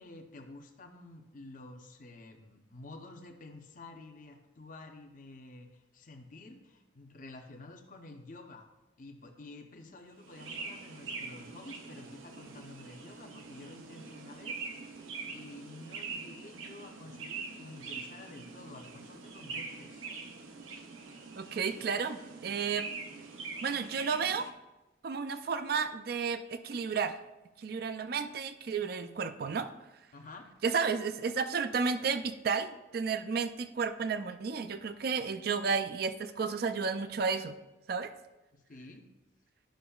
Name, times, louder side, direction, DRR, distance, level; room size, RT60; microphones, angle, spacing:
voice 1, 0.0-8.7 9.0-14.6 15.3-20.1 30.1-30.5 38.5-39.0, left 2 dB, 40° left, 4 dB, 0.7 m, -50 dB
sound 1, 10.2-24.5, right 4 dB, 90° right, 0.7 m, -44 dB
voice 2, 21.4-22.9 23.6-24.5 25.0-27.2 27.6-29.7 30.6-37.5 37.9-38.1, right 5 dB, 50° right, 10 dB, 0.4 m, -32 dB
11.5 x 6.0 x 2.3 m, 1.0 s
head